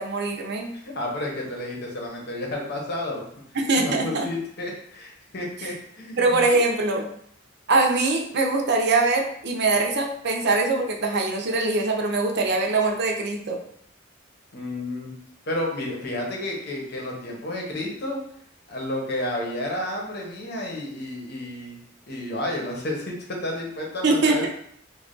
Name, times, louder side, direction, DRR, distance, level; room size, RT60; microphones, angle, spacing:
voice 1, 0.0-0.7 3.5-4.3 6.2-7.1 7.7-13.6 24.0-24.5, right 3 dB, 60° right, 1 dB, 0.6 m, -22 dB
voice 2, 0.7-3.2 3.8-6.4 14.5-15.1 15.5-18.2 18.7-21.8 22.1-24.5, left 1 dB, 55° left, -1 dB, 0.9 m, -31 dB
3.2 x 2.4 x 3.8 m, 0.68 s
head